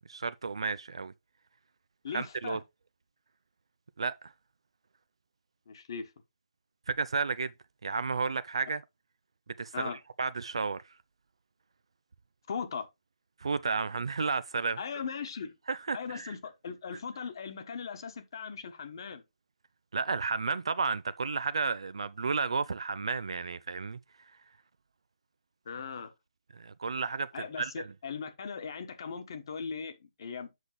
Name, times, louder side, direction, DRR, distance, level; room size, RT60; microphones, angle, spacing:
voice 1, 0.1-1.1 2.1-2.6 4.0-4.3 6.9-7.5 7.8-8.8 9.6-10.8 13.4-14.8 15.7-16.3 19.9-24.0 26.5-27.9, right 4 dB, 55° right, 0.4 m, -32 dB
voice 2, 2.0-2.6 5.7-6.1 9.7-10.0 12.5-12.9 14.8-15.5 15.9-19.2 25.6-26.1 27.3-30.5, left 6 dB, 40° left, 1.3 m, -39 dB
7.8 x 6.4 x 3.2 m
figure-of-eight pair, 140°, 3 cm